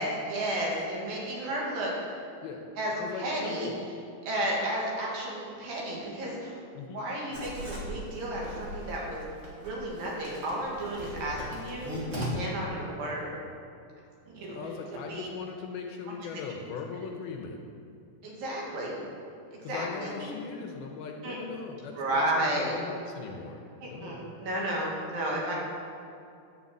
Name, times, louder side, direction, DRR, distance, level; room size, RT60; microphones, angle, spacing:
voice 1, 0.0-1.9 2.8-2.9 3.2-3.7 4.3-6.6 6.9-9.2 9.6-13.3 14.3-14.6 15.1-15.3 16.1-16.3 18.2-18.9 19.5-20.3 21.2-21.4 22.0-22.7 23.8-25.5, right 1 dB, 60° right, -4 dB, 3.7 m, -32 dB
voice 2, 2.9-3.8 6.7-7.0 14.5-17.6 18.2-18.7 19.6-24.3, left 5 dB, 75° left, 2 dB, 2.6 m, -40 dB
Writing, 7.3-12.3, equal, 25° right, 1.4 m, -40 dB
11.0 x 7.0 x 8.5 m, 2.5 s
omnidirectional pair, 4.8 m